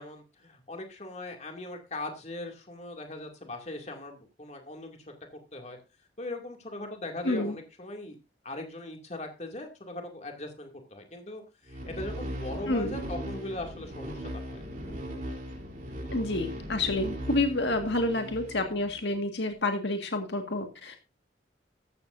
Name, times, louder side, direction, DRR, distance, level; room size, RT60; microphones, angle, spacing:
voice 1, 0.0-5.0 5.5-5.8 6.2-8.2 8.4-14.6, left 2 dB, 40° left, 3 dB, 2.5 m, -40 dB
sound 1, 11.7-19.1, equal, 45° right, 3.4 m, -38 dB
voice 2, 16.1-21.0, left 2 dB, 70° left, 5 dB, 1.8 m, -29 dB
14.0 x 12.5 x 2.6 m, 0.28 s
head